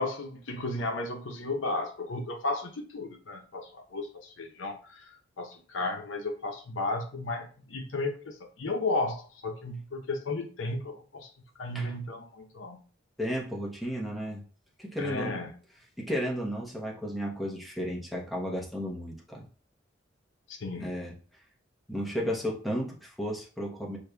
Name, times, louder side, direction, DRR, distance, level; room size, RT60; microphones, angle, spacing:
voice 1, 0.0-11.3 11.6-12.8 15.0-15.5 20.5-20.9, left 2 dB, 80° left, 3 dB, 0.7 m, -34 dB
voice 2, 13.2-14.4 14.8-15.4 16.0-19.4 20.8-21.1 21.9-24.0, equal, ahead, -3 dB, 0.9 m, -33 dB
6.4 x 2.6 x 2.2 m, 0.39 s
head